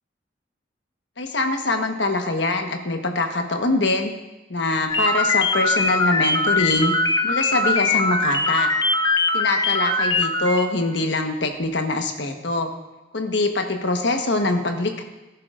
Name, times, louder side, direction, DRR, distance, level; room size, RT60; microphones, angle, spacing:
voice 1, 1.2-4.1 4.5-6.9 7.2-8.7 9.3-12.7 13.1-15.0, left 2 dB, 75° left, 4 dB, 1.2 m, -23 dB
sound 1, 4.9-10.7, left 2 dB, 20° left, 0.7 m, -21 dB
17.0 x 10.5 x 2.5 m, 1.1 s
head